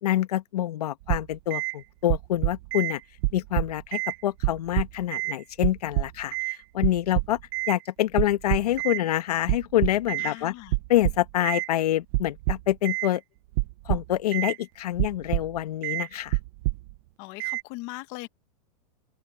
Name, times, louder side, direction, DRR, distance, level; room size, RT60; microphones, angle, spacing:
voice 1, 0.0-3.0 3.3-7.4 7.7-10.5 10.9-13.2 13.8-16.4, left 13 dB, 70° left, 1.5 m, -26 dB
sound 1, 1.1-1.7 2.1-2.9 3.2-4.1 4.4-5.3 5.6-6.6 6.8-7.7 8.2-9.0 9.5-10.3 10.7-11.7 12.1-13.1 13.6-14.5 15.0-15.6 15.8-16.1 16.3-16.9 17.4-17.6, right 20 dB, 35° right, 1.0 m, -27 dB
voice 2, 10.2-10.7 17.2-18.3, left 21 dB, 35° left, 1.2 m, -39 dB
open air
supercardioid pair, 165°, 21 cm